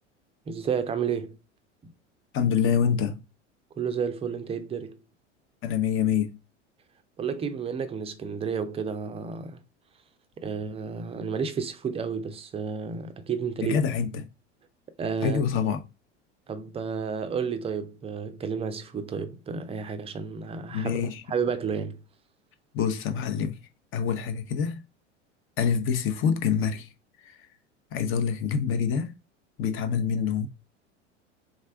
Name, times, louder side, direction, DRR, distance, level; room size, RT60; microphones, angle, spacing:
voice 1, 0.5-1.4 1.8-1.9 3.8-5.0 7.2-9.6 10.4-13.8 15.0-15.4 16.5-21.0 21.3-22.0, right 6 dB, 15° right, 0.5 m, -31 dB
voice 2, 2.3-3.2 5.6-6.4 13.6-14.3 15.2-15.8 20.7-21.2 22.7-23.6 23.9-24.8 25.6-26.9 27.2-27.4 27.9-29.1 29.6-30.5, left 7 dB, 35° left, 0.9 m, -26 dB
3.8 x 3.3 x 3.4 m
figure-of-eight pair, 80°, 37 cm